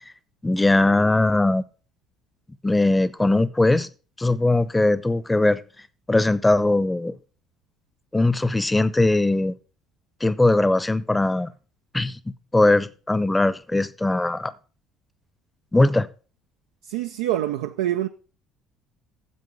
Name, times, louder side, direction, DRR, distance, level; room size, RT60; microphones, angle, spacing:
voice 1, 0.4-1.6 2.6-3.9 4.2-5.6 6.1-7.2 8.1-9.5 10.2-11.5 11.9-12.2 12.5-14.5 15.7-16.1, left 2 dB, 15° left, 0.8 m, -20 dB
voice 2, 16.8-18.1, right 13 dB, 80° right, 0.4 m, -25 dB
9.7 x 7.5 x 5.3 m
hypercardioid pair, 60°, 0 cm